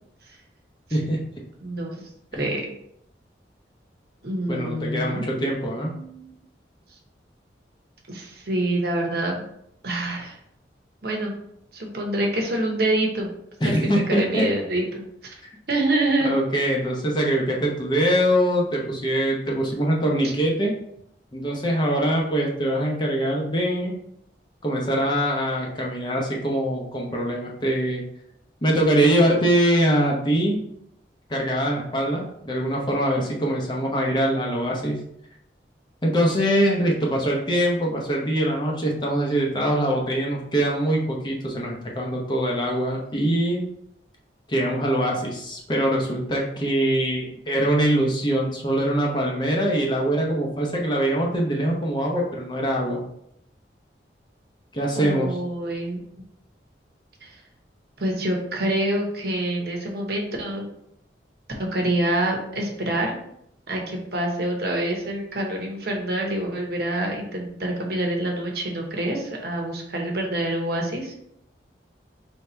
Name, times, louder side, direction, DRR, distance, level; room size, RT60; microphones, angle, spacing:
voice 1, 1.6-2.1 2.4-2.6 4.2-6.3 8.1-9.4 9.8-10.4 11.0-11.3 11.7-13.3 13.8-15.3 15.7-16.4 20.2-20.3 55.0-56.0 57.2-57.3 58.0-60.6 61.7-63.2 63.7-71.1, right 1 dB, 60° right, 1 dB, 0.9 m, -26 dB
voice 2, 4.5-5.9 13.6-14.5 16.2-20.8 21.3-23.9 24.6-28.0 28.6-30.6 31.3-35.0 36.0-43.6 44.5-53.0 54.7-55.4, right 1 dB, 25° left, -1 dB, 0.7 m, -23 dB
3.3 x 2.7 x 4.3 m, 0.74 s
head